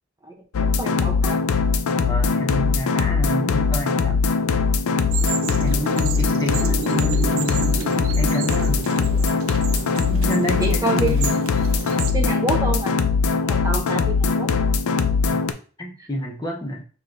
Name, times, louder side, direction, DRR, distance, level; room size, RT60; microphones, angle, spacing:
sound 1, 0.5-15.5, left 4 dB, 90° left, 0.5 m, -21 dB
voice 1, 0.8-1.4 5.3-5.5 10.6-11.3 12.1-12.9 13.3-14.5, right 2 dB, 15° right, 0 dB, 0.6 m, -27 dB
voice 2, 2.0-4.2 5.6-7.8 8.2-8.9 10.1-11.4 15.3-15.4 15.8-16.9, equal, 20° left, 0 dB, 0.7 m, -29 dB
sound 2, 5.1-12.1, right 7 dB, 75° right, 0.6 m, -31 dB
6.1 x 3.1 x 2.5 m, 0.39 s
head